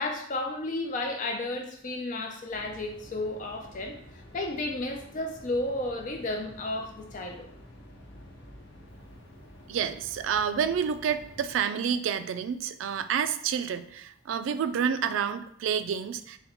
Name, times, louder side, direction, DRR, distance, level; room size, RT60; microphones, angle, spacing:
voice 1, 0.0-4.0 4.3-7.5, left 2 dB, 45° left, 3 dB, 0.4 m, -32 dB
sound 1, 2.5-11.5, left 1 dB, 70° left, 0.8 m, -50 dB
voice 2, 9.7-16.4, right 7 dB, 85° right, 12 dB, 0.3 m, -29 dB
4.3 x 2.1 x 3.8 m, 0.65 s
head